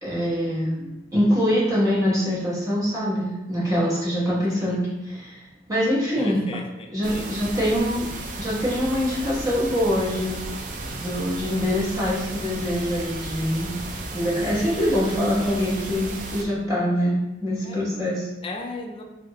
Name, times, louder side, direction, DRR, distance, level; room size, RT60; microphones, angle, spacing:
voice 1, 0.0-5.4 5.7-6.4 6.9-8.0 8.4-10.4 10.8-13.7 14.1-18.3, equal, 20° right, -8 dB, 1.0 m, -24 dB
voice 2, 6.2-7.4 14.5-15.0 15.4-15.8 17.6-17.8 18.4-19.0, left 2 dB, 30° left, 3 dB, 0.3 m, -37 dB
sound 1, 7.0-16.4, right 2 dB, 45° right, 0.3 m, -34 dB
2.7 x 2.4 x 3.0 m, 0.95 s
head